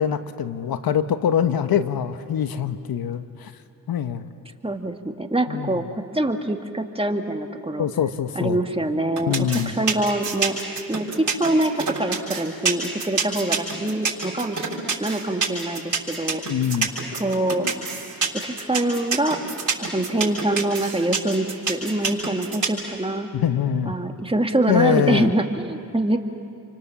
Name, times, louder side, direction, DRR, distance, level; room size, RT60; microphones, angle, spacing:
voice 1, 0.0-3.5 3.9-4.3 5.5-5.8 7.8-8.6 9.2-9.7 16.4-16.9 23.3-23.9 24.7-25.3, left 8 dB, 80° left, 10 dB, 1.1 m, -23 dB
voice 2, 4.6-7.9 8.4-10.6 10.9-14.7 15.0-16.4 17.2-17.7 18.3-19.4 19.8-23.3 23.9-26.2, right 1 dB, 15° right, 4 dB, 2.2 m, -24 dB
sound 1, 9.2-22.8, right 5 dB, 55° right, 6.1 m, -26 dB
29.0 x 25.0 x 7.3 m, 2.6 s
cardioid pair, 55°, 36 cm